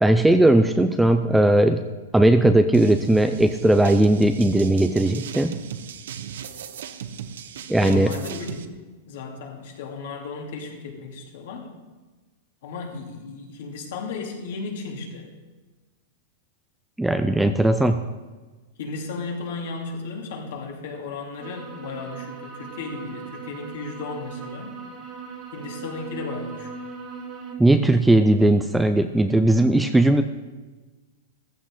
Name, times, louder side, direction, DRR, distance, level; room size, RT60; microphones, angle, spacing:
voice 1, 0.0-1.8 2.1-5.6 7.7-8.1 17.0-18.0 27.6-30.2, right 1 dB, 5° right, 7 dB, 0.4 m, -18 dB
sound 1, 2.7-8.6, right 8 dB, 75° right, 1.0 m, -37 dB
voice 2, 7.8-8.7 9.1-11.7 12.6-15.3 18.8-24.8 25.5-26.7, left 4 dB, 55° left, 1 dB, 2.8 m, -34 dB
sound 2, 21.4-27.6, right 5 dB, 20° right, 1.8 m, -39 dB
16.0 x 15.0 x 3.8 m, 1.3 s
supercardioid pair, 175°, 0 cm